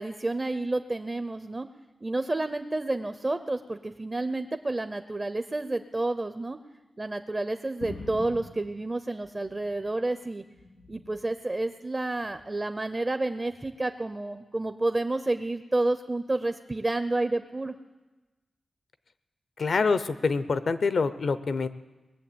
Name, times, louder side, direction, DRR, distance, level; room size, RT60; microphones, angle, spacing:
voice 1, 0.0-1.7 2.0-6.6 7.0-10.4 10.9-17.8, right 2 dB, 25° right, 10 dB, 0.5 m, -30 dB
sound 1, 7.8-10.0 10.4-11.3 12.2-12.6 13.6-13.7, left 2 dB, 85° left, 2.4 m, -45 dB
voice 2, 19.6-21.7, left 4 dB, 60° left, 13 dB, 0.7 m, -26 dB
20.0 x 7.4 x 8.6 m, 1.2 s
wide cardioid pair, 130°, 0 cm